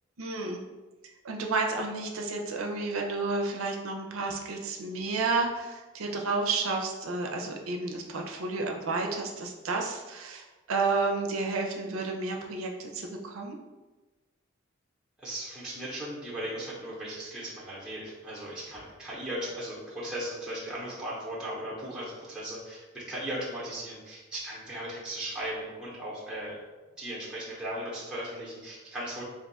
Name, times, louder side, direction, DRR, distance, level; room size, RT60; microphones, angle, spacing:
voice 1, 0.2-0.6 1.2-13.6, right 3 dB, 85° right, 2 dB, 0.5 m, -31 dB
voice 2, 15.2-26.6 27.0-29.2, right 1 dB, 5° right, -7 dB, 0.7 m, -37 dB
2.5 x 2.3 x 3.9 m, 1.2 s
head